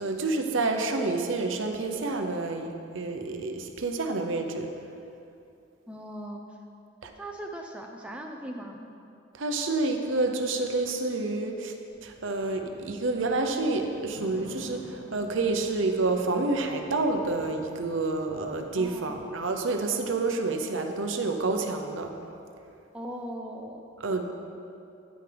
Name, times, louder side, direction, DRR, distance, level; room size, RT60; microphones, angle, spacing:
voice 1, 0.0-4.7 7.0-7.1 9.4-11.7 12.0-22.1 24.0-24.3, right 3 dB, 80° right, 5 dB, 0.8 m, -28 dB
voice 2, 5.9-6.4 7.2-8.9 18.7-19.1 22.9-23.8, right 1 dB, 5° right, 1 dB, 0.5 m, -39 dB
sound 1, 11.9-19.3, equal, 60° left, 1.8 m, -49 dB
9.9 x 9.2 x 3.4 m, 2.6 s
head